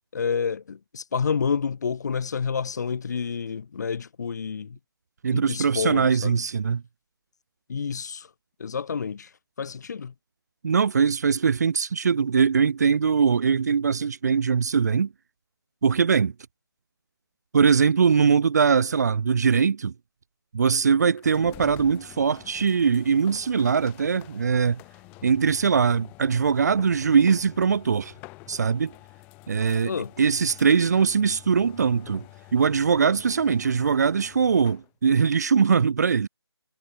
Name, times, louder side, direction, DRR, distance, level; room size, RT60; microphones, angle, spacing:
voice 1, 0.0-4.8 5.3-6.4 7.7-8.3 8.6-9.3 9.6-10.1 29.9-30.1, left 6 dB, 40° left, 3.6 m, -29 dB
voice 2, 5.2-6.8 10.6-15.1 15.8-16.3 17.5-19.9 20.5-24.8 25.2-28.1 28.5-28.9 29.5-29.9 30.2-32.2 32.5-36.3, right 6 dB, 40° right, 1.8 m, -21 dB
sound 1, 21.2-34.9, left 25 dB, 10° left, 2.3 m, -48 dB
figure-of-eight pair, 165°, 14 cm